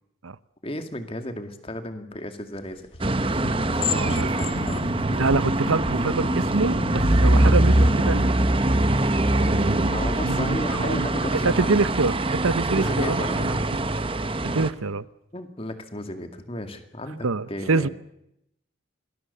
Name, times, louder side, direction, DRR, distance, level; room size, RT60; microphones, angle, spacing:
voice 1, 0.6-2.9 3.8-4.9 7.4-7.7 9.8-11.9 12.7-13.6 15.3-17.9, left 1 dB, 25° left, 2.2 m, -34 dB
sound 1, 2.5-6.8, left 12 dB, 75° left, 2.1 m, -37 dB
sound 2, 3.0-14.7, right 1 dB, 25° right, 1.0 m, -23 dB
sound 3, 3.2-8.3, equal, 55° left, 7.1 m, -34 dB
voice 2, 3.9-4.3 5.2-8.6 9.3-11.1 11.4-13.6 14.4-15.0 17.2-17.9, right 3 dB, 90° right, 0.8 m, -26 dB
26.5 x 20.5 x 6.9 m
head